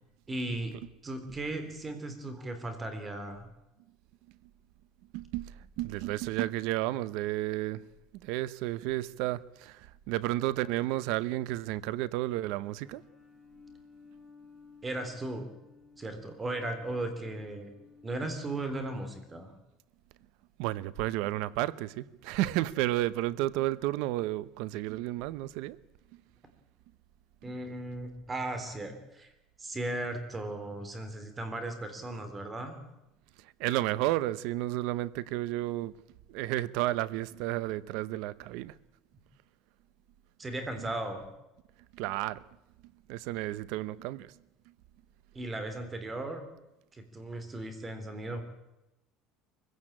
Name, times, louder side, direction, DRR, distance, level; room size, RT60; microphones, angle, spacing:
voice 1, 0.3-0.8 1.0-3.5 14.8-15.5 16.0-17.7 18.0-19.5 27.4-29.3 29.6-32.8 40.4-41.3 45.3-46.4 46.9-48.4, right 2 dB, 20° right, 3.4 m, -36 dB
voice 2, 5.1-7.8 8.2-13.0 20.6-25.8 33.4-35.9 36.3-38.7 41.9-42.4 43.1-44.3, right 16 dB, 70° right, 0.8 m, -32 dB
sound 1, 12.8-18.5, left 5 dB, ahead, 3.4 m, -56 dB
23.5 x 16.0 x 8.9 m
cardioid pair, 145°, 0 cm